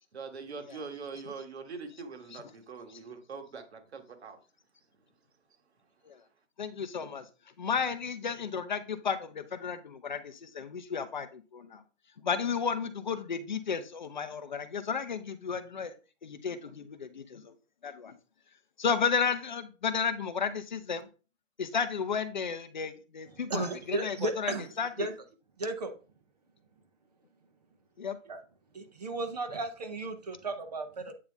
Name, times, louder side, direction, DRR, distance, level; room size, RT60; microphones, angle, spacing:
voice 1, 0.1-4.4, right 4 dB, 60° right, 1.5 m, -43 dB
voice 2, 6.6-11.8 12.2-15.9 16.2-17.5 17.8-18.2 18.8-21.1 21.6-25.1 28.0-28.2, left 6 dB, 40° left, 0.6 m, -33 dB
voice 3, 23.5-24.7 25.0-25.1 25.6-25.9 28.3-28.4 28.7-31.1, right 2 dB, 35° right, 0.8 m, -34 dB
8.5 x 4.0 x 3.4 m
hypercardioid pair, 165°, 37 cm